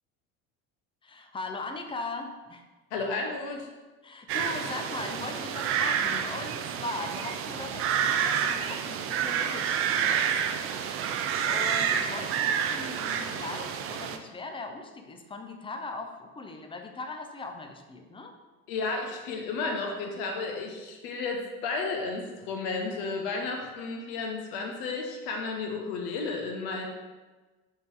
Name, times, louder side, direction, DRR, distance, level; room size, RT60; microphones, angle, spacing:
voice 1, 1.0-2.6 4.0-10.4 11.5-18.3, left 3 dB, 10° left, 5 dB, 0.6 m, -39 dB
voice 2, 2.9-3.7 18.7-26.9, left 3 dB, 55° left, 2 dB, 1.0 m, -33 dB
sound 1, 4.3-14.2, right 8 dB, 30° right, 0.5 m, -29 dB
5.4 x 4.0 x 4.6 m, 1.2 s
figure-of-eight pair, 65°, 43 cm